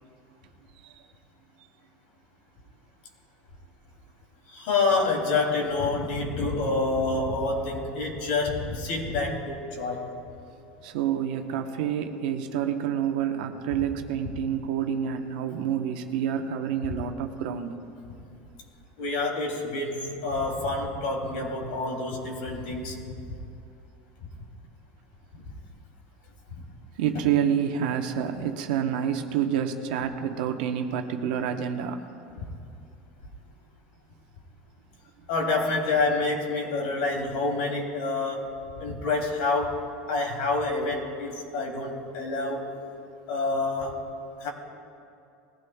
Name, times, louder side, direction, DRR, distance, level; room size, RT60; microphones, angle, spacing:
voice 1, 4.5-10.1 19.0-23.1 24.2-24.3 25.3-25.4 26.6-26.7 27.1-27.3 32.4-32.5 35.3-42.7 43.3-44.1 44.4-44.5, left 3 dB, 75° left, 0 dB, 2.9 m, -28 dB
voice 2, 10.8-17.7 27.0-32.0, right 8 dB, 80° right, 5 dB, 1.0 m, -28 dB
20.5 x 15.5 x 2.3 m, 2.7 s
supercardioid pair, 155°, 5 cm